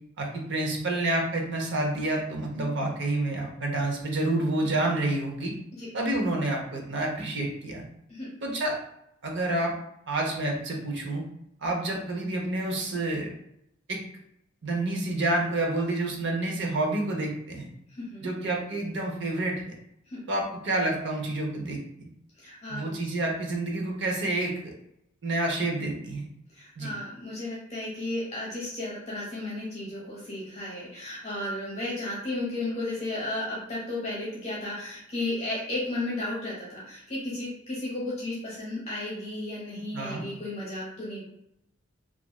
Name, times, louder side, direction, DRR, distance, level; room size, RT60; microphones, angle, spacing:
voice 1, 0.2-5.5 5.9-7.8 8.4-8.8 9.2-9.7 10.1-11.2 11.6-13.3 13.9-14.0 14.6-17.7 18.2-19.8 20.3-21.8 22.7-24.7 25.2-26.3 26.8-26.9 39.9-40.2, right 2 dB, 60° right, 0 dB, 0.7 m, -28 dB
voice 2, 17.9-18.3 20.1-20.2 22.4-22.9 26.5-41.2, left 2 dB, 30° left, -6 dB, 0.9 m, -34 dB
3.0 x 2.4 x 2.2 m, 0.78 s
head